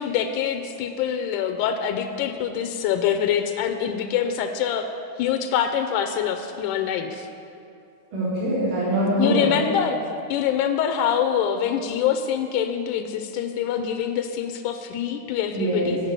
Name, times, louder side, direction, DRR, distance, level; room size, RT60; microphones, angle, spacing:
voice 1, 0.0-4.9 5.2-7.3 9.2-10.0 10.3-16.0, left 8 dB, 90° left, 6 dB, 2.1 m, -25 dB
voice 2, 8.1-9.5 15.5-16.1, right 1 dB, 90° right, -14 dB, 4.7 m, -23 dB
8.9 x 6.5 x 8.1 m, 2.6 s
omnidirectional pair, 3.5 m